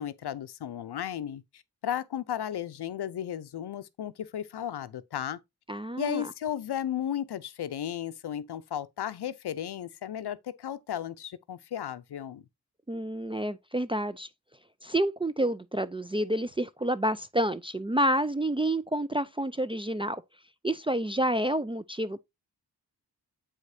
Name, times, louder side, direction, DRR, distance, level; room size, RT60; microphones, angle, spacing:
voice 1, 0.0-5.4 6.0-12.4, left 10 dB, 70° left, 0.6 m, -34 dB
voice 2, 5.7-6.2 12.9-14.3 14.8-20.2 20.6-22.2, right 1 dB, 15° right, 0.3 m, -29 dB
7.6 x 4.8 x 2.6 m
cardioid pair, 45°, 41 cm